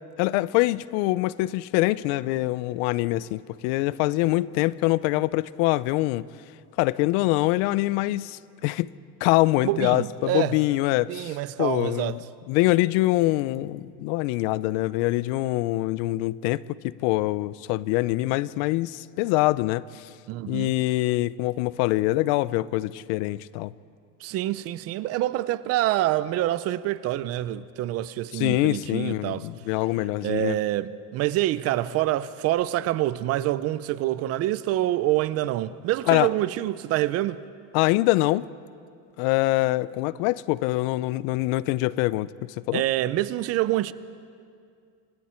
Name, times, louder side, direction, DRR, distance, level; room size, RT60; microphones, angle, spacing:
voice 1, 0.2-6.2 6.8-8.9 9.2-12.2 12.5-19.8 20.5-23.7 28.3-30.6 36.1-36.3 37.7-38.5 39.2-42.8, left 18 dB, 85° left, 0.7 m, -24 dB
voice 2, 9.6-10.6 11.1-12.2 20.3-20.7 24.2-29.5 30.2-37.4 42.7-43.9, right 14 dB, 45° right, 0.6 m, -26 dB
28.0 x 27.0 x 4.5 m
cardioid pair, 175°, 35 cm